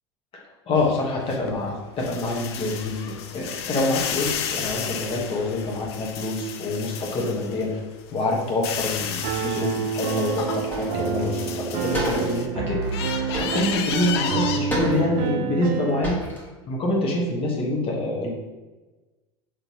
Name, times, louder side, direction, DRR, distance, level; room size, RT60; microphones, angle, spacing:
voice 1, 0.7-7.8 8.1-16.2 16.7-18.3, left 2 dB, 40° left, -2 dB, 1.2 m, -26 dB
sound 1, 0.8-7.7 8.1-12.5 12.8-14.6, left 7 dB, 75° left, 0.4 m, -33 dB
Piano, 9.2-16.1, right 6 dB, 55° right, 0.4 m, -28 dB
sound 2, 10.5-11.0 11.4-11.5 11.9-12.4 13.3-14.0 14.7-15.3 15.8-15.9 16.0-16.4, equal, 15° left, 1.4 m, -30 dB
3.9 x 3.1 x 3.0 m, 1.2 s
hypercardioid pair, 85°, 14 cm